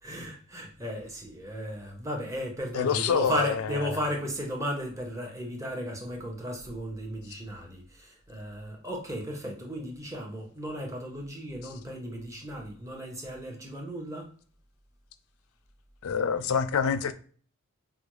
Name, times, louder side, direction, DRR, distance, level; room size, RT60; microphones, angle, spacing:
voice 1, 0.0-14.3, equal, 15° right, 0.9 m, -35 dB
voice 2, 2.7-4.0 16.0-17.1, left 7 dB, 85° left, 0.4 m, -27 dB
5.1 x 2.2 x 3.1 m
head